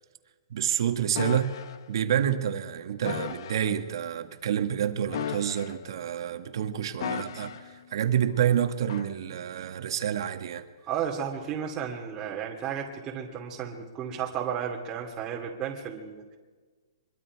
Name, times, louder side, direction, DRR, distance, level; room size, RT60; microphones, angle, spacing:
voice 1, 0.5-1.6 1.9-10.7, right 9 dB, 65° right, 1.9 m, -28 dB
sound 1, 1.2-1.8 3.0-3.7 5.1-6.0 7.0-7.8 8.9-9.1, left 8 dB, 60° left, 1.2 m, -35 dB
voice 2, 10.8-16.4, right 8 dB, 20° right, 2.6 m, -33 dB
24.5 x 22.5 x 4.9 m
hypercardioid pair, 155°, 3 cm